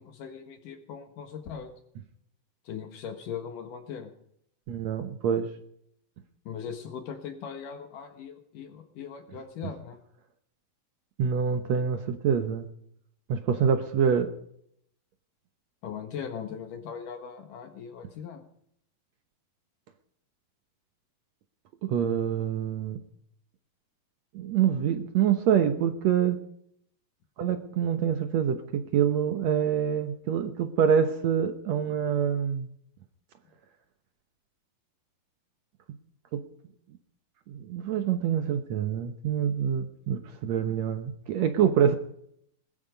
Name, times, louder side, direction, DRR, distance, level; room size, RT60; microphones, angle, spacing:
voice 1, 0.0-1.7 2.6-4.1 6.5-10.0 15.8-18.4, left 7 dB, 70° left, 6 dB, 3.0 m, -39 dB
voice 2, 4.7-5.5 11.2-12.7 13.3-14.3 21.8-23.0 24.3-26.4 27.4-32.7 36.3-36.4 37.5-42.0, right 8 dB, 65° right, 7 dB, 1.8 m, -26 dB
21.0 x 13.0 x 5.2 m, 0.70 s
omnidirectional pair, 4.1 m